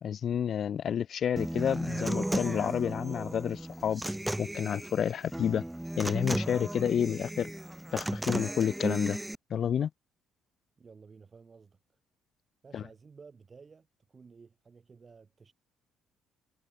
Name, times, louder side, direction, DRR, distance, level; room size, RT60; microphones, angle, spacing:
voice 1, 0.0-4.0 4.4-5.6 6.0-7.5 7.9-9.2 9.5-9.9 12.7-12.8, left 8 dB, 55° left, 0.6 m, -30 dB
Human voice / Acoustic guitar, 1.4-9.3, right 1 dB, 5° right, 1.1 m, -34 dB
voice 2, 10.8-11.8 12.6-15.5, right 5 dB, 35° right, 4.1 m, -54 dB
supercardioid pair, 70°, 0 cm